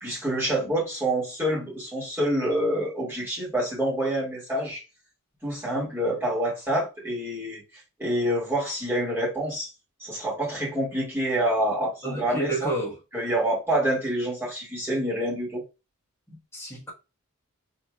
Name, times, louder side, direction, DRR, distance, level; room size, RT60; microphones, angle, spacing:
voice 1, 0.0-4.8 5.4-7.6 8.0-9.7 10.0-12.7 13.1-15.6, right 1 dB, 10° right, 2.2 m, -27 dB
voice 2, 12.0-13.0 16.3-16.9, right 1 dB, 10° left, 1.3 m, -31 dB
4.2 x 3.4 x 2.3 m
head